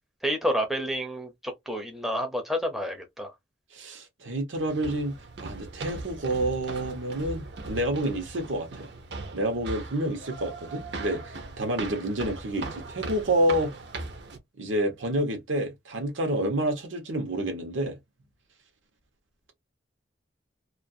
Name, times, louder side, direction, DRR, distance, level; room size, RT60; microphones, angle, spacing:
voice 1, 0.2-3.3, equal, ahead, 0.5 m, -29 dB
voice 2, 3.7-8.9 9.3-13.7 14.6-18.0, right 1 dB, 90° right, 0.9 m, -29 dB
sound 1, 4.6-14.4, right 3 dB, 65° right, 0.6 m, -39 dB
2.4 x 2.3 x 2.6 m
head